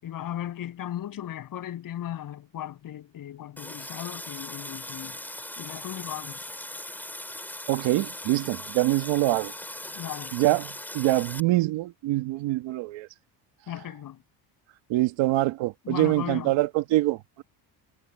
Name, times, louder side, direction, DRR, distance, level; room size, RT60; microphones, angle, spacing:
voice 1, 0.0-5.2 5.6-6.5 9.9-10.4 13.7-14.2 15.8-16.5, left 11 dB, 45° left, 7.4 m, -36 dB
Water tap faucet, 3.6-11.4, left 1 dB, 5° left, 3.6 m, -39 dB
voice 2, 7.7-9.5 10.3-13.1 14.9-17.4, right 17 dB, 80° right, 2.1 m, -25 dB
cardioid pair, 165°, 44 cm